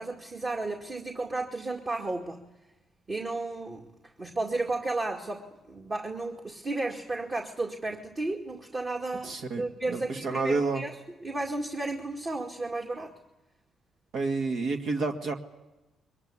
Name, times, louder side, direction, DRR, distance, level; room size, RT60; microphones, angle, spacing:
voice 1, 0.0-2.4 3.1-3.8 4.2-10.9 11.2-13.1, right 2 dB, 35° right, 1 dB, 2.2 m, -33 dB
voice 2, 9.2-10.8 14.1-15.3, right 3 dB, 70° right, 4 dB, 2.1 m, -29 dB
22.5 x 20.0 x 9.8 m, 1.0 s
cardioid pair, 90°, 0 cm